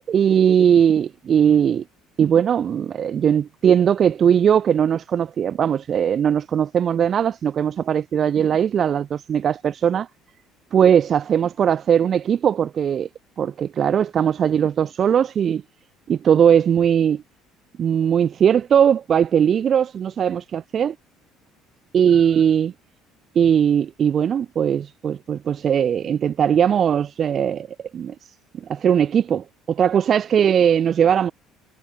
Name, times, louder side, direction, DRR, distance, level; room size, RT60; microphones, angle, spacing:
voice 1, 0.1-1.8 2.2-10.1 10.7-13.1 13.4-15.6 16.1-17.2 17.8-21.0 21.9-22.7 23.4-27.7 27.9-28.1 28.7-31.3, right 8 dB, 45° right, 3.6 m, -19 dB
hypercardioid pair, 60°, 0 cm